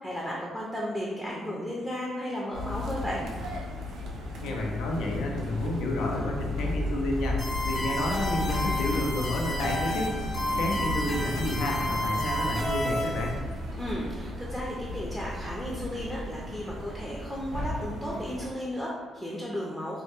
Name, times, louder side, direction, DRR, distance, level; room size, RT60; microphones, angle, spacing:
voice 1, 0.0-3.2 13.7-20.0, equal, 10° left, -5 dB, 0.4 m, -34 dB
sound 1, 2.5-18.5, left 1 dB, 75° right, 0.4 m, -34 dB
voice 2, 4.4-7.4 7.6-10.1 10.6-13.3, left 1 dB, 85° left, 0 dB, 0.4 m, -30 dB
sound 2, 7.4-13.3, left 1 dB, 50° left, 0.8 m, -31 dB
2.2 x 2.2 x 2.9 m, 1.4 s
cardioid pair, 90°, 0 cm